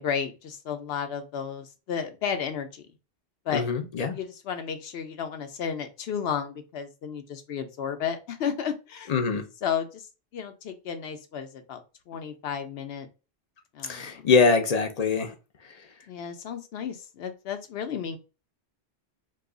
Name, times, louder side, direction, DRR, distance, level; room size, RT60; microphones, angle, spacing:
voice 1, 0.0-2.8 3.5-3.7 4.1-9.1 9.6-10.0 10.3-11.8 12.1-13.1 13.7-14.3 16.1-18.2, left 7 dB, 75° left, 0.8 m, -33 dB
voice 2, 3.5-4.2 9.1-9.4 13.8-15.3, left 4 dB, 45° left, 0.6 m, -23 dB
2.7 x 2.3 x 3.7 m
omnidirectional pair, 1.1 m